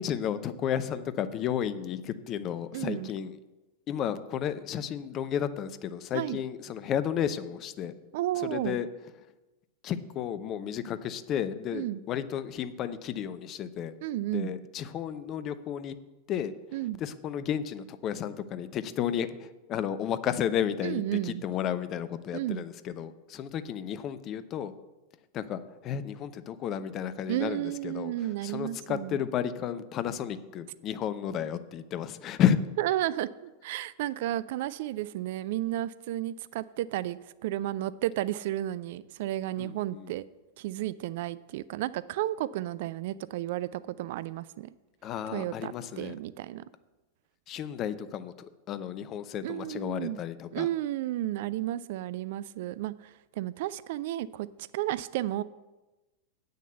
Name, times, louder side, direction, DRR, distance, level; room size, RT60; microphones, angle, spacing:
voice 1, 0.0-3.3 3.9-7.9 8.4-8.9 9.8-13.9 14.3-15.9 16.3-16.5 17.0-24.7 25.3-28.1 28.4-32.6 39.6-40.1 45.0-46.2 47.5-50.7, left 9 dB, 35° left, 13 dB, 0.6 m, -32 dB
voice 2, 2.7-3.1 6.1-6.4 8.1-8.8 11.7-12.0 14.0-14.5 16.7-17.0 20.8-21.4 22.3-22.6 27.3-29.2 32.8-40.2 40.6-44.7 45.3-46.6 49.4-50.2 50.5-54.5 54.7-55.4, right 14 dB, 50° right, 17 dB, 0.3 m, -32 dB
8.5 x 6.6 x 7.8 m, 1.1 s
figure-of-eight pair, 90°, 0 cm